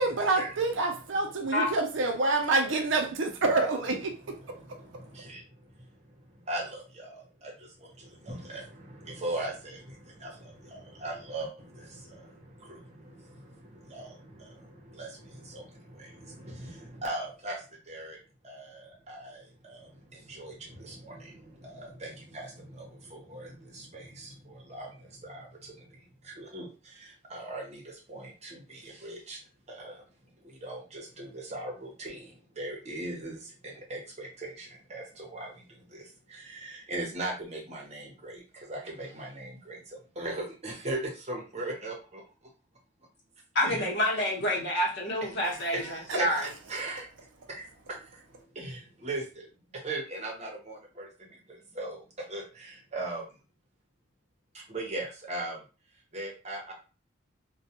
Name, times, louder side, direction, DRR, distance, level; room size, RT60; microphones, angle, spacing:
voice 1, 0.0-4.8 45.4-45.5 46.1-46.2, right 3 dB, 65° right, 0.5 m, -27 dB
voice 2, 4.4-29.4 29.7-30.0 30.4-42.2 43.6-43.9 45.2-45.3 45.7-47.1 47.5-53.2 54.5-55.6 56.1-56.7, right 2 dB, 35° right, 0.8 m, -40 dB
voice 3, 43.5-46.4, left 1 dB, 55° left, 1.0 m, -28 dB
2.2 x 2.2 x 2.8 m
head